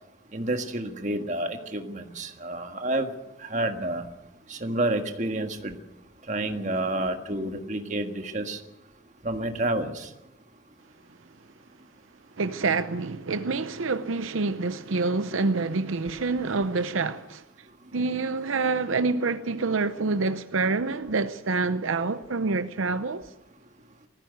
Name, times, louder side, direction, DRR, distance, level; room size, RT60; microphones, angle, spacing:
voice 1, 0.3-4.1 4.5-5.9 6.2-8.6 9.2-10.1 17.6-18.0, right 1 dB, 35° right, 1.7 m, -30 dB
voice 2, 12.4-17.4 17.9-23.3, right 3 dB, 80° right, 0.7 m, -27 dB
19.0 x 15.0 x 9.3 m
head